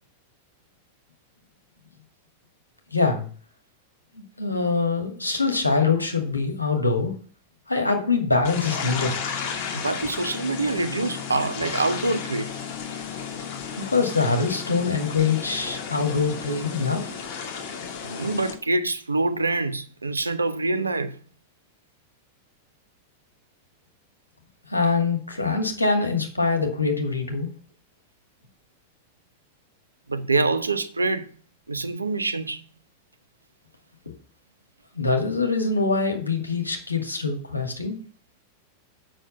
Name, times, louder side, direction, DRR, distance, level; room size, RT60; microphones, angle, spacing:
voice 1, 2.9-3.2 4.1-7.1 7.7-9.2 13.8-17.1 24.7-27.5 34.9-38.0, left 4 dB, 80° left, 2.1 m, -24 dB
sound 1, 8.4-18.5, left 6 dB, 45° left, 2.2 m, -33 dB
voice 2, 9.7-12.5 18.0-21.2 30.1-31.3 31.7-32.6, right 3 dB, 80° right, 0.8 m, -25 dB
7.7 x 6.4 x 6.8 m
figure-of-eight pair, 90°, 0 cm